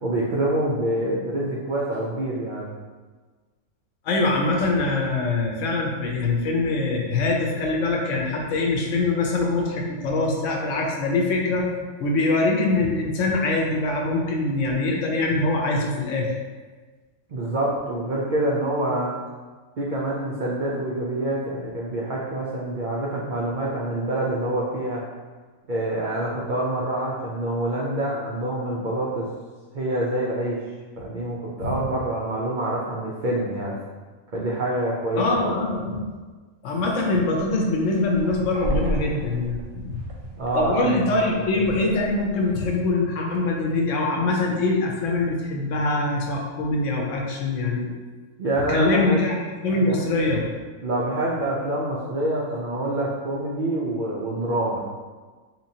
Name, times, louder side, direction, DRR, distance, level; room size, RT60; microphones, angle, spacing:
voice 1, 0.0-2.7 17.3-19.2 19.8-25.1 25.7-29.3 29.7-30.6 31.0-33.8 34.3-35.5 40.4-41.3 48.4-49.2 49.7-50.0 50.8-54.8, right 1 dB, 80° right, -4 dB, 0.4 m, -26 dB
voice 2, 4.0-11.7 12.0-16.3 31.6-31.7 35.1-36.0 36.6-39.8 40.5-47.9 48.7-50.4, left 2 dB, 65° left, 0 dB, 0.9 m, -23 dB
sound 1, 37.4-42.7, right 1 dB, 60° right, 0.8 m, -34 dB
4.3 x 2.9 x 2.7 m, 1.4 s
omnidirectional pair, 1.5 m